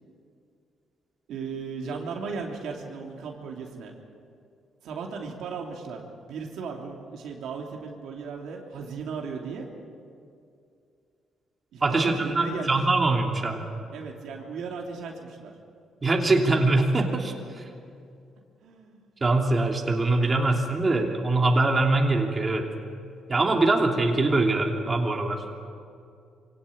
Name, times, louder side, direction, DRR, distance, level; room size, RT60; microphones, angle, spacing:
voice 1, 1.3-3.9 4.8-9.7 11.7-12.9 13.9-15.5 18.6-19.0, right 5 dB, 80° right, 1 dB, 2.9 m, -36 dB
voice 2, 11.8-13.7 16.0-17.7 19.2-22.6 23.3-25.4, right 2 dB, 30° right, 1 dB, 3.0 m, -23 dB
24.0 x 17.5 x 8.7 m, 2.4 s
cardioid pair, 90°, 0 cm